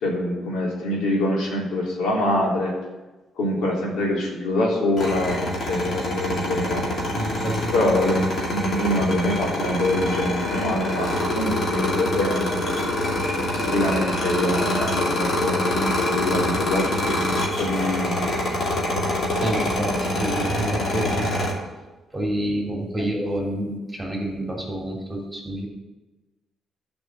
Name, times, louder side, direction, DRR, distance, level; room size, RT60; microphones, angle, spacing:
voice 1, 0.0-2.7 3.4-6.8 7.7-12.7 13.7-17.2 17.5-18.2, left 1 dB, 80° left, -3 dB, 3.2 m, -25 dB
sound 1, 5.0-21.5, left 1 dB, 55° left, 2.6 m, -25 dB
voice 2, 7.1-7.7 13.5-13.6 19.4-21.3 22.1-25.7, right 1 dB, 15° right, -1 dB, 2.9 m, -28 dB
11.0 x 5.2 x 7.4 m, 1.2 s
cardioid pair, 90°, 0 cm